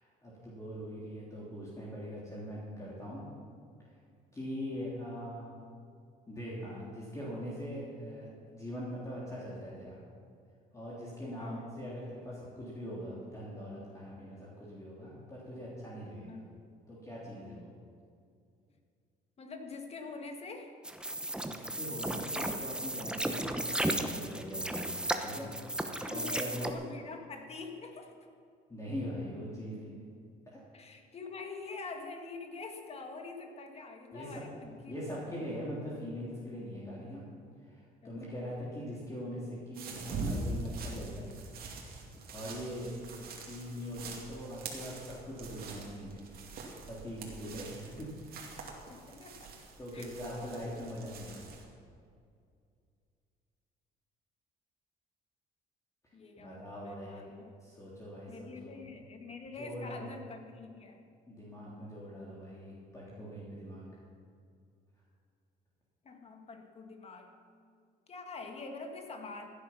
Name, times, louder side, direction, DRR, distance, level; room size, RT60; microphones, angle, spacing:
voice 1, 0.0-3.3 4.3-5.5 6.3-10.0 10.7-16.4 16.9-17.7 21.4-25.5 26.1-26.6 28.7-29.9 30.5-30.6 34.1-34.4 34.9-37.3 37.6-41.3 42.3-42.9 43.4-46.2 46.9-48.5 49.8-51.5 56.4-57.3 57.6-58.8 59.6-60.1 61.3-63.8, equal, 20° left, -6 dB, 3.2 m, -42 dB
voice 2, 19.4-20.8 26.0-28.1 30.7-35.0 38.0-38.4 48.9-49.6 49.9-50.5 56.1-57.6 58.3-61.0 66.0-67.3 68.1-69.5, left 3 dB, 35° left, 4 dB, 1.9 m, -45 dB
sound 1, 20.8-26.7, right 1 dB, 5° right, 1.0 m, -35 dB
sound 2, 39.7-51.6, right 3 dB, 65° right, 2.7 m, -43 dB
16.0 x 10.0 x 5.9 m, 2.3 s
cardioid pair, 110°, 17 cm